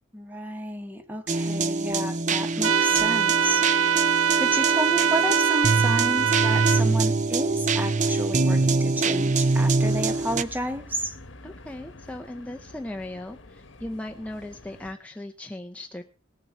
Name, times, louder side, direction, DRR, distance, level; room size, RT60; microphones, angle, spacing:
voice 1, 0.1-3.7 4.3-11.1, equal, 10° right, 7 dB, 1.3 m, -31 dB
sound 1, 1.3-10.4, right 3 dB, 35° right, 0.6 m, -24 dB
sound 2, 2.6-6.8, right 8 dB, 85° right, 0.6 m, -23 dB
sound 3, 9.8-14.9, left 2 dB, 60° left, 1.2 m, -46 dB
voice 2, 11.4-16.0, left 1 dB, 5° left, 3 dB, 0.6 m, -37 dB
18.0 x 7.6 x 5.6 m, 0.37 s
head